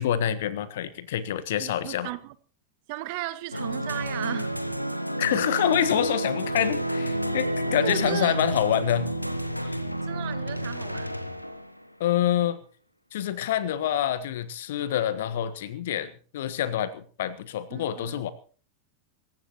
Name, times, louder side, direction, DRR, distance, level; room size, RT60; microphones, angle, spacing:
voice 1, 0.0-2.1 5.2-9.1 9.6-9.8 12.0-12.6 13.1-18.3, left 11 dB, 55° left, 1.4 m, -27 dB
voice 2, 1.6-2.4 2.9-4.6 7.8-8.4 10.0-11.2 17.7-18.2, right 16 dB, 45° right, 1.3 m, -35 dB
sound 1, 3.5-11.8, right 1 dB, 90° left, 1.2 m, -30 dB
26.0 x 15.0 x 3.0 m
figure-of-eight pair, 90°, 0 cm